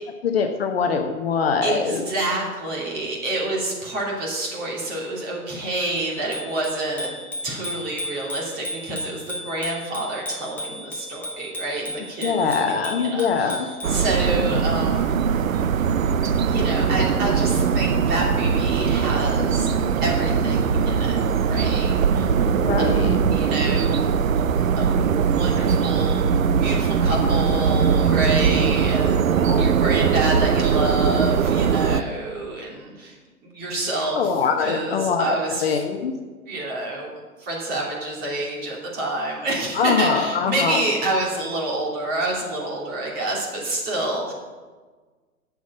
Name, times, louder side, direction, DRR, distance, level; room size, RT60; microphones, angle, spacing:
voice 1, 0.2-2.0 12.2-13.7 22.6-23.2 29.5-29.6 34.1-36.1 39.7-40.8, left 5 dB, 40° left, 5 dB, 0.9 m, -23 dB
voice 2, 1.6-7.1 7.4-13.6 13.9-15.2 16.5-19.7 20.0-22.3 22.8-22.9 23.3-24.2 24.8-33.1 33.4-34.3 34.6-35.8 36.5-37.1 37.4-44.3, right 2 dB, 20° right, -3 dB, 2.9 m, -28 dB
Bicycle bell, 6.0-14.0, left 1 dB, 5° left, 0.8 m, -35 dB
sound 1, 13.8-32.0, right 6 dB, 65° right, 0.7 m, -20 dB
7.4 x 7.3 x 8.4 m, 1.4 s
figure-of-eight pair, 125°, 45 cm